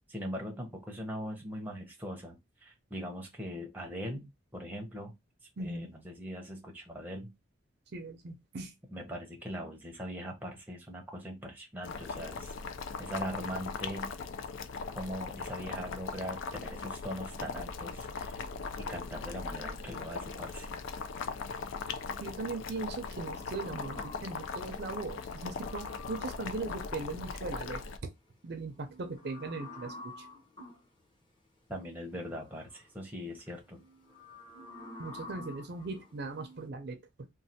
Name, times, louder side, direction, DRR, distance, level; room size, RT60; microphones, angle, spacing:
voice 1, 0.1-5.1 5.6-7.3 8.9-12.5 13.0-14.1 14.9-18.4 18.8-20.7 31.7-33.8, equal, 10° right, 0.6 m, -41 dB
voice 2, 5.6-5.9 7.9-8.7 22.2-28.1 28.4-30.3 35.0-37.3, right 3 dB, 50° right, 0.5 m, -39 dB
Boiling, 11.8-28.0, left 5 dB, 65° left, 0.3 m, -39 dB
sound 1, 23.2-26.5 28.7-30.9 32.2-32.8 33.3-36.7, left 2 dB, 20° left, 0.8 m, -49 dB
3.1 x 2.2 x 2.7 m
head